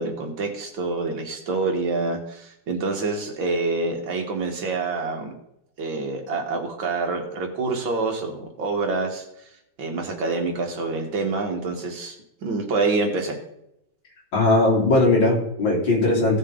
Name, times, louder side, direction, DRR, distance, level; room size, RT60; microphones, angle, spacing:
voice 1, 0.0-5.3 5.8-9.2 9.8-12.2 12.4-13.4, right 3 dB, 80° right, 2 dB, 2.5 m, -26 dB
voice 2, 14.3-16.4, left 2 dB, 75° left, -3 dB, 4.2 m, -19 dB
16.5 x 6.6 x 3.8 m, 0.81 s
omnidirectional pair, 2.1 m